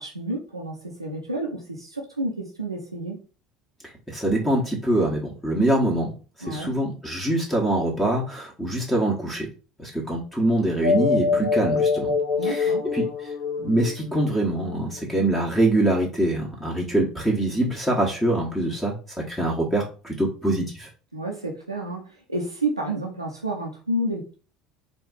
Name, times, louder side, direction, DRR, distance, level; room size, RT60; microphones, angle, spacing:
voice 1, 0.0-3.2 6.4-6.7 12.4-12.8 21.1-24.3, right 1 dB, 85° right, -1 dB, 0.6 m, -30 dB
voice 2, 4.1-6.1 6.4-9.5 9.8-12.1 12.4-13.1 13.6-20.9, right 1 dB, 10° left, -2 dB, 1.3 m, -24 dB
sound 1, 10.8-14.7, left 4 dB, 60° left, 1.0 m, -24 dB
4.5 x 2.6 x 3.9 m, 0.36 s
figure-of-eight pair, 65°, 3 cm